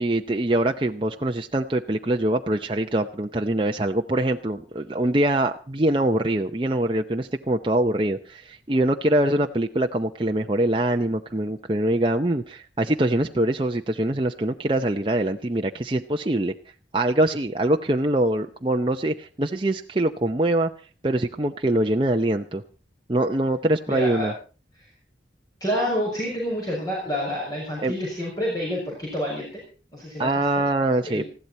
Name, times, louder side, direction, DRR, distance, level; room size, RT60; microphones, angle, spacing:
voice 1, 0.0-16.5 16.9-20.7 21.0-22.6 23.1-24.3 27.8-27.9 30.2-31.2, right 1 dB, 30° right, 3 dB, 0.7 m, -23 dB
voice 2, 23.9-24.3 25.6-29.5 29.9-30.5 31.0-31.3, equal, 20° left, -3 dB, 6.3 m, -28 dB
20.0 x 15.5 x 4.3 m, 0.37 s
head